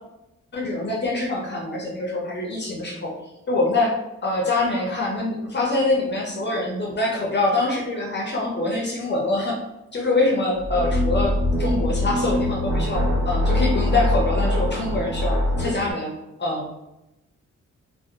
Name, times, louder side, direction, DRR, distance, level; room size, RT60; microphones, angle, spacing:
voice 1, 0.5-3.1 3.5-3.9 4.2-9.6 9.9-16.1 16.4-16.7, left 2 dB, 40° left, -2 dB, 0.5 m, -24 dB
sound 1, 10.6-15.8, left 1 dB, 5° right, 1.3 m, -23 dB
2.5 x 2.0 x 2.7 m, 0.91 s
cardioid pair, 90°, 29 cm